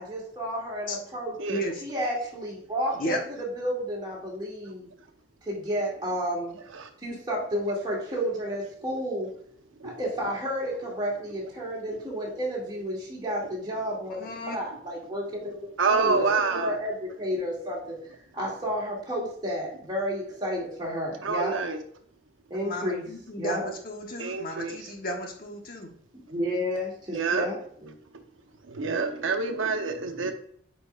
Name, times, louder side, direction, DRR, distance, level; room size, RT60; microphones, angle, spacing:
voice 1, 0.0-1.4 1.8-4.9 5.4-6.6 7.0-9.3 9.8-21.6 22.5-23.1 23.4-23.7 26.1-28.0, equal, 25° right, -4 dB, 2.3 m, -31 dB
voice 2, 14.1-14.6 22.6-25.9, equal, 45° left, 2 dB, 1.2 m, -34 dB
voice 3, 15.8-16.7 21.2-21.8 24.2-24.9 27.1-27.5 28.7-30.3, right 4 dB, 85° right, 6 dB, 0.8 m, -27 dB
8.6 x 4.7 x 2.4 m, 0.63 s
head